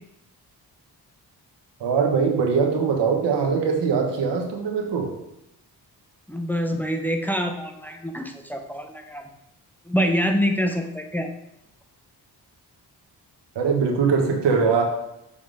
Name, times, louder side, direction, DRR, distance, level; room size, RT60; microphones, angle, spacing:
voice 1, 1.8-5.1 13.5-14.8, right 5 dB, 85° right, 2 dB, 1.3 m, -22 dB
voice 2, 6.3-9.2 9.9-11.3, equal, 5° left, 4 dB, 0.9 m, -25 dB
7.0 x 3.7 x 4.9 m, 0.84 s
cardioid pair, 65°, 41 cm